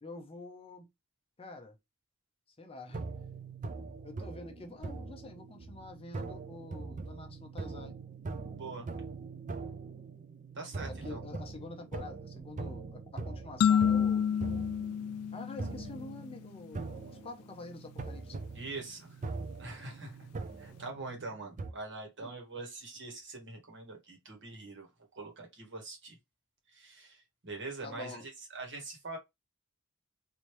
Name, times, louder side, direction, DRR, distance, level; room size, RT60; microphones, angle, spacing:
voice 1, 0.0-0.9 1.4-1.8 2.6-3.0 4.0-8.0 10.9-14.4 15.3-18.4 22.2-22.3 27.8-28.2, left 3 dB, 25° left, 0.6 m, -47 dB
sound 1, 2.9-21.7, right 3 dB, 35° right, 0.5 m, -42 dB
voice 2, 8.5-8.9 10.5-11.2 18.5-19.2 19.6-20.3 20.6-24.9 25.1-26.2 26.7-29.2, right 3 dB, 55° right, 1.3 m, -43 dB
sound 2, 13.6-16.3, left 8 dB, 75° left, 0.3 m, -28 dB
3.3 x 2.7 x 3.0 m
head